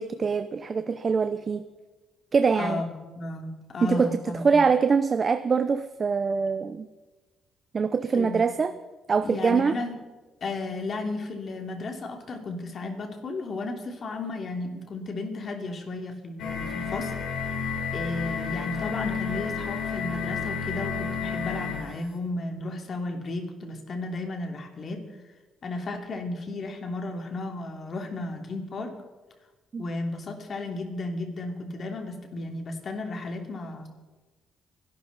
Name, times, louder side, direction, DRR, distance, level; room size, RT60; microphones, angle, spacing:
voice 1, 0.0-1.6 2.3-2.8 3.8-4.2 4.4-6.9 7.7-8.7 9.1-9.7 29.7-29.8, right 5 dB, 40° right, 11 dB, 0.7 m, -24 dB
voice 2, 2.6-4.6 8.1-8.5 9.2-10.0 10.4-17.2 17.5-17.6 17.9-25.1 25.6-29.0 29.8-33.9, left 2 dB, 50° left, 3 dB, 2.8 m, -34 dB
sound 1, 16.4-21.9, left 6 dB, 80° left, 3.8 m, -31 dB
23.5 x 12.0 x 4.1 m, 1.2 s
cardioid pair, 90°, 0 cm